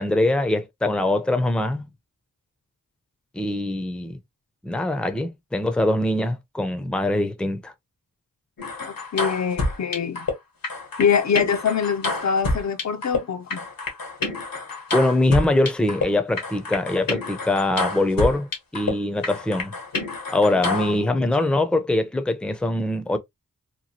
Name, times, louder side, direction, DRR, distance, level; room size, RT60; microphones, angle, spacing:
voice 1, 0.0-1.9 3.3-4.2 4.6-7.7 14.9-19.7 20.3-23.2, left 1 dB, 5° left, 0.5 m, -23 dB
sound 1, 8.6-10.3 10.6-13.2 13.5-16.1 16.4-18.9 19.2-20.9, left 3 dB, 85° left, 1.1 m, -28 dB
voice 2, 8.8-10.3 11.0-13.6 20.6-20.9, left 7 dB, 55° left, 0.5 m, -24 dB
2.9 x 2.3 x 2.6 m
wide cardioid pair, 55°, 33 cm